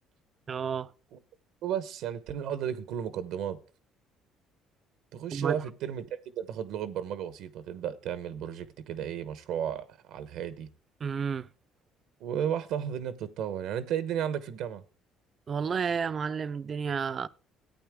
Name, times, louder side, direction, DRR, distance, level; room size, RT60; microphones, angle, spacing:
voice 1, 0.5-0.9 5.3-5.6 11.0-11.5 15.5-17.3, right 6 dB, 40° right, 0.5 m, -31 dB
voice 2, 1.6-3.6 5.1-6.1 6.4-10.7 12.2-14.8, right 9 dB, 75° right, 1.0 m, -33 dB
14.0 x 8.9 x 3.6 m
cardioid pair, 95°, 0 cm